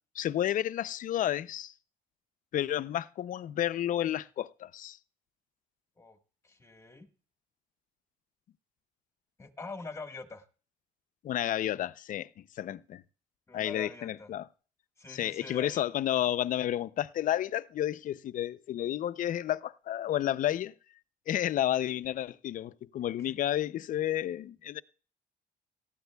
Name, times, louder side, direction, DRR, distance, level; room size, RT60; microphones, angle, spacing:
voice 1, 0.1-1.7 2.5-5.0 11.2-13.0 13.5-14.5 15.1-20.7 21.3-24.8, left 12 dB, 50° left, 0.5 m, -31 dB
voice 2, 6.4-7.1 9.4-10.4 13.5-14.3 15.0-15.8 23.2-23.4, left 3 dB, 15° left, 1.5 m, -44 dB
18.5 x 13.5 x 2.3 m
cardioid pair, 110°, 17 cm